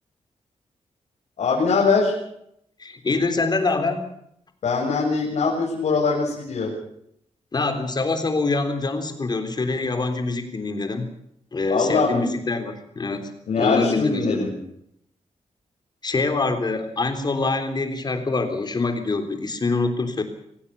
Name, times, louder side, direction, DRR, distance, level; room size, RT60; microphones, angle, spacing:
voice 1, 1.4-2.1 4.6-6.7 11.7-12.3 13.5-14.5, left 4 dB, 90° left, -4 dB, 7.1 m, -22 dB
voice 2, 2.8-4.1 7.5-11.1 11.5-13.3 13.6-14.4 16.0-20.2, left 3 dB, 35° left, 7 dB, 3.6 m, -25 dB
25.5 x 17.0 x 7.1 m, 0.73 s
wide cardioid pair, 130°, 12 cm